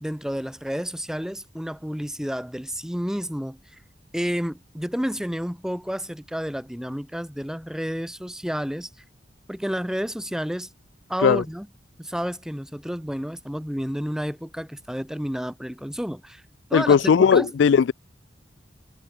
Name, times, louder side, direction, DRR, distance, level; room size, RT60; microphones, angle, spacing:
voice 1, 0.0-3.6 4.1-8.9 9.5-10.7 11.1-11.7 12.0-16.4 16.7-17.5, equal, 5° right, 1.1 m, -30 dB
voice 2, 16.7-17.9, left 6 dB, 75° left, 0.4 m, -17 dB
head